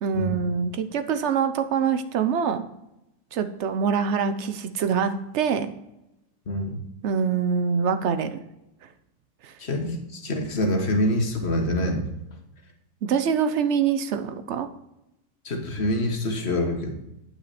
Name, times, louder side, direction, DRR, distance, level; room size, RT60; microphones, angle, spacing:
voice 1, 0.0-2.6 3.3-5.7 7.0-8.4 9.4-9.5 13.0-14.7, right 6 dB, 60° right, 10 dB, 0.8 m, -24 dB
voice 2, 9.6-12.0 15.4-16.9, left 1 dB, 40° left, 3 dB, 1.5 m, -25 dB
9.8 x 6.0 x 4.1 m, 0.89 s
omnidirectional pair, 1.7 m